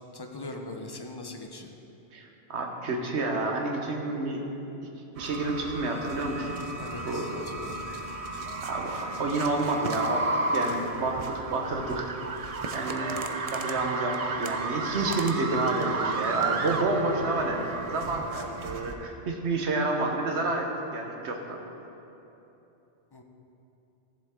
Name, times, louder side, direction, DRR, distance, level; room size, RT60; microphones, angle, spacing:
voice 1, 0.0-1.7 6.8-7.8 23.1-23.2, left 2 dB, 25° left, 3 dB, 0.6 m, -41 dB
voice 2, 2.1-4.4 5.2-6.7 7.0-7.3 8.3-10.3 10.5-12.1 12.7-13.2 13.5-20.7 20.9-21.6, right 2 dB, 80° right, 1 dB, 1.4 m, -29 dB
sound 1, 5.2-18.9, right 3 dB, 45° right, 0.5 m, -33 dB
14.0 x 7.1 x 3.7 m, 3.0 s
omnidirectional pair, 1.1 m